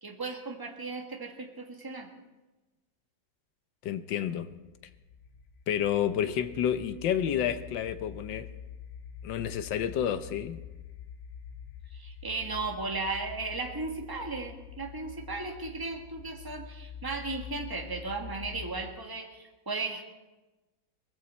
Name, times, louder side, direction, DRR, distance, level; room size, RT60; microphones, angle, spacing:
voice 1, 0.0-2.1 11.9-20.0, right 3 dB, 15° right, 2 dB, 1.3 m, -36 dB
voice 2, 3.8-4.5 5.7-8.5 9.2-10.6, left 9 dB, 75° left, 12 dB, 1.4 m, -30 dB
sound 1, 4.5-19.1, left 8 dB, 50° left, 1.8 m, -46 dB
19.5 x 15.0 x 4.3 m, 1.1 s
omnidirectional pair, 2.1 m